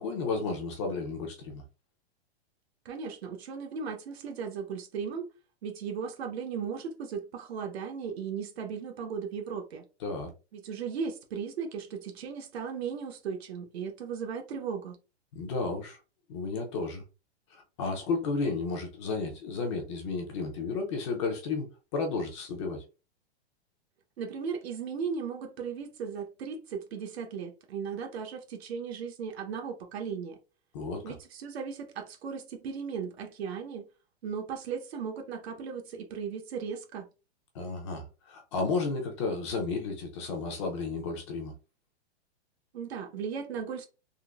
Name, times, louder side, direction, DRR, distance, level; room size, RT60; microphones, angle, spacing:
voice 1, 0.0-1.6 10.0-10.3 15.3-16.0 16.3-17.0 17.5-22.8 30.7-31.1 37.5-41.5, left 4 dB, 25° left, 0.5 m, -33 dB
voice 2, 2.8-5.3 5.6-9.9 10.5-15.0 24.2-30.4 31.0-33.8 34.2-37.1 42.7-43.9, right 6 dB, 70° right, 0.9 m, -36 dB
3.7 x 2.5 x 2.3 m
hypercardioid pair, 160°, 33 cm